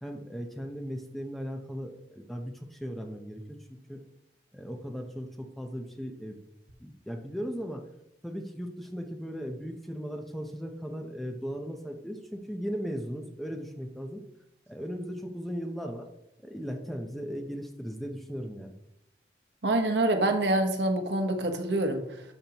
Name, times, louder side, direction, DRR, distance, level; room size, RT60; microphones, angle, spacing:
voice 1, 0.0-4.0 4.5-6.4 6.8-7.8 8.2-14.2 14.7-16.1 16.4-18.7, equal, ahead, 3 dB, 0.8 m, -37 dB
voice 2, 19.6-22.2, right 1 dB, 85° right, 5 dB, 1.2 m, -26 dB
12.0 x 6.1 x 3.0 m, 0.83 s
head